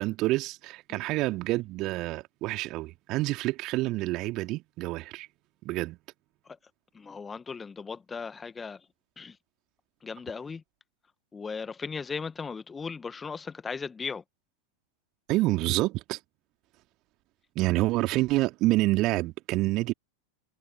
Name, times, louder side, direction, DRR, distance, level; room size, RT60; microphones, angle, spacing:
voice 1, 0.0-5.3 5.6-6.0 15.3-16.2 17.5-19.9, right 19 dB, 40° right, 2.7 m, -27 dB
voice 2, 6.9-8.8 9.2-9.4 10.0-10.6 11.3-14.2, left 5 dB, 15° left, 1.6 m, -37 dB
figure-of-eight pair, 90°, 0 cm